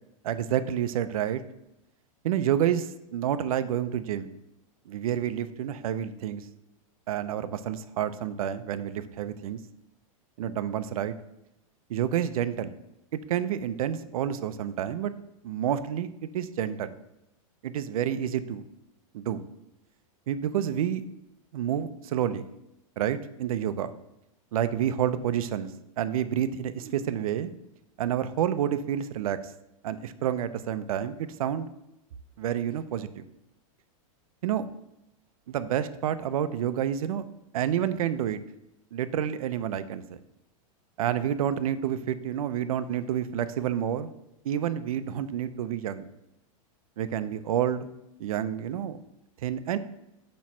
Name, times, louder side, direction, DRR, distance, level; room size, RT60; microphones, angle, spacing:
voice 1, 0.2-1.4 2.2-4.3 4.9-6.4 7.1-9.6 10.4-11.1 11.9-12.7 13.1-15.1 15.4-16.1 16.3-16.9 17.6-18.6 19.1-19.5 20.3-21.0 21.5-22.4 23.0-23.9 24.5-25.7 26.0-27.5 28.0-29.4 29.8-31.7 32.4-33.2 34.4-34.6 35.5-37.2 37.5-38.4 38.9-40.2 41.0-44.1 44.4-46.1 47.0-47.9 48.2-49.0 49.4-49.8, right 10 dB, 80° right, 12 dB, 0.6 m, -29 dB
8.6 x 3.1 x 6.0 m, 0.87 s
supercardioid pair, 170°, 18 cm